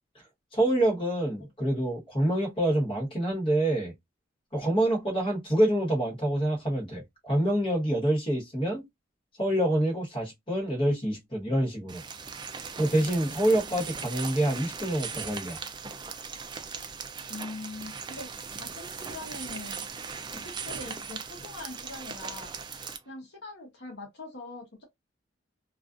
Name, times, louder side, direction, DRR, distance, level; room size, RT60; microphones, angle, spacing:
voice 1, 0.5-3.9 4.5-8.8 9.4-12.0 12.8-15.6, right 1 dB, 25° left, 1.2 m, -26 dB
sound 1, 11.9-23.0, right 5 dB, 25° right, 0.3 m, -39 dB
voice 2, 17.3-18.3 18.6-19.9 20.3-22.6 23.1-24.8, left 2 dB, 60° left, 0.9 m, -42 dB
2.4 x 2.4 x 2.4 m
head